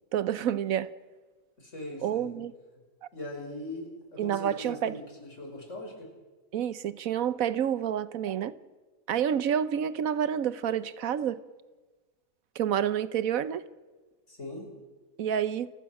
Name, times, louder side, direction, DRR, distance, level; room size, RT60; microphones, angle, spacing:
voice 1, 0.1-0.9 2.0-2.5 4.2-5.0 6.5-8.5 9.1-11.4 12.6-13.6 15.2-15.7, right 9 dB, 75° right, 1.2 m, -28 dB
voice 2, 1.6-2.3 3.1-6.1 14.3-14.7, left 1 dB, 60° left, 5.6 m, -40 dB
28.5 x 15.0 x 6.0 m
omnidirectional pair, 1.5 m